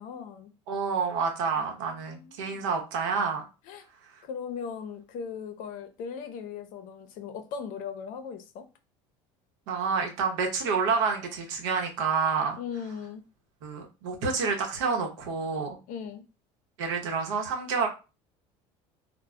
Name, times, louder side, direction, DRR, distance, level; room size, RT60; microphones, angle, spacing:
voice 1, 0.0-0.5 1.6-2.7 3.6-3.8 4.2-8.7 12.6-13.2 15.9-16.2, left 6 dB, 65° left, 0.6 m, -38 dB
voice 2, 0.7-3.4 9.7-12.6 13.6-15.8 16.8-17.9, right 5 dB, 85° right, 0.8 m, -28 dB
2.1 x 2.0 x 3.6 m
supercardioid pair, 90°, 15 cm